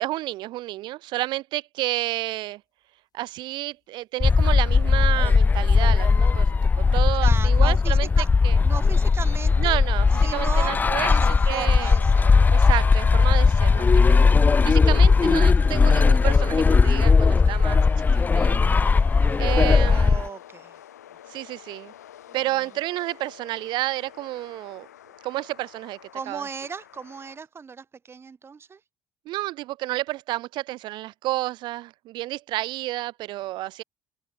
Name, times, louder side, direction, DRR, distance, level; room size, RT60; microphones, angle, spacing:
voice 1, 0.0-2.6 3.1-6.5 6.8-8.1 8.4-8.6 9.6-11.9 12.5-14.3 14.6-17.8 18.1-18.6 19.4-20.2 21.3-21.9 22.3-24.9 25.2-26.0 26.3-26.4 29.2-33.8, right 17 dB, 60° right, 1.1 m, -30 dB
sound 1, 4.2-20.3, left 4 dB, 20° left, 0.4 m, -18 dB
sound 2, 6.5-7.1 7.5-7.6 7.9-13.1, left 9 dB, 50° left, 5.9 m, -47 dB
voice 2, 7.2-8.3 8.6-9.8 10.2-10.8 11.0-12.3 14.7-14.9 19.1-19.4 19.8-20.7 26.1-28.8, right 5 dB, 30° right, 0.8 m, -36 dB
sound 3, 9.2-27.4, left 11 dB, 85° left, 5.4 m, -47 dB
open air
hypercardioid pair, 60°, 9 cm